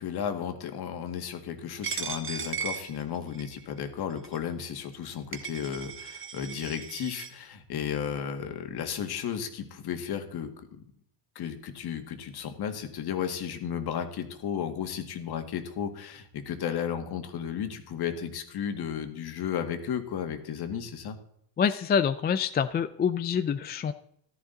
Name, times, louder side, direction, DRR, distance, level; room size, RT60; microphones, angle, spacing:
voice 1, 0.0-10.5 11.4-21.2, left 8 dB, 50° left, 7 dB, 2.0 m, -34 dB
Coin (dropping), 1.8-3.6 4.2-4.4 5.0-5.1 5.3-7.3, right 6 dB, 25° right, 1.5 m, -37 dB
voice 2, 21.6-23.9, left 7 dB, 20° left, 11 dB, 0.4 m, -26 dB
14.5 x 13.0 x 4.0 m, 0.69 s
cardioid pair, 125°, 50 cm